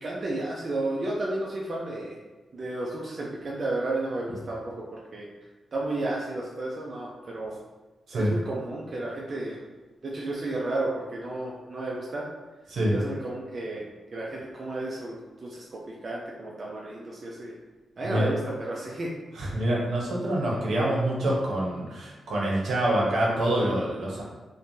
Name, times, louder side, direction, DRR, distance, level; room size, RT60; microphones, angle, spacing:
voice 1, 0.0-2.2 2.5-4.7 5.1-5.3 5.7-7.5 8.1-9.6 10.0-12.2 12.9-13.8 14.1-17.5 18.0-19.1, right 2 dB, 40° right, -4 dB, 0.3 m, -32 dB
voice 2, 18.0-18.3 19.3-24.2, right 1 dB, 75° right, -4 dB, 0.8 m, -26 dB
3.1 x 2.1 x 2.6 m, 1.2 s
wide cardioid pair, 135°, 0 cm